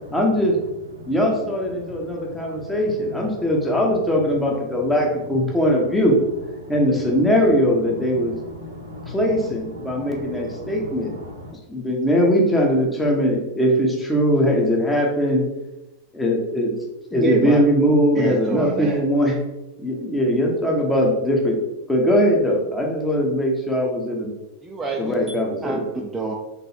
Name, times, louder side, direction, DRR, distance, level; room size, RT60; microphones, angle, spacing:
voice 1, 0.1-0.6 1.1-6.2 6.7-8.3 9.1-11.1 11.7-15.4 16.1-16.7 17.1-19.4 19.8-21.6 21.9-24.3 25.0-25.8, equal, 10° left, -1 dB, 0.8 m, -20 dB
voice 2, 1.8-2.8 3.3-3.5 4.7-4.8 6.6-7.1 7.9-11.5, left 1 dB, 75° right, 0 dB, 0.8 m, -38 dB
voice 3, 17.1-17.6 18.1-19.0 24.6-25.2 25.6-26.3, right 3 dB, 15° right, 0 dB, 0.4 m, -27 dB
3.9 x 3.3 x 2.8 m, 0.99 s
figure-of-eight pair, 90°, 0 cm